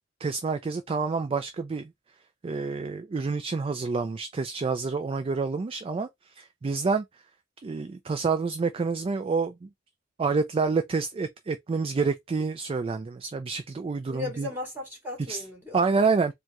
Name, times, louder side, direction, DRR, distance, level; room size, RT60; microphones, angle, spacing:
voice 1, 0.2-1.9 2.4-6.1 6.4-7.1 7.6-9.7 10.2-14.5 15.3-15.4 15.7-16.3, right 4 dB, 30° right, 0.3 m, -28 dB
voice 2, 14.1-16.2, left 3 dB, 10° right, 2.3 m, -37 dB
4.5 x 2.2 x 2.9 m
head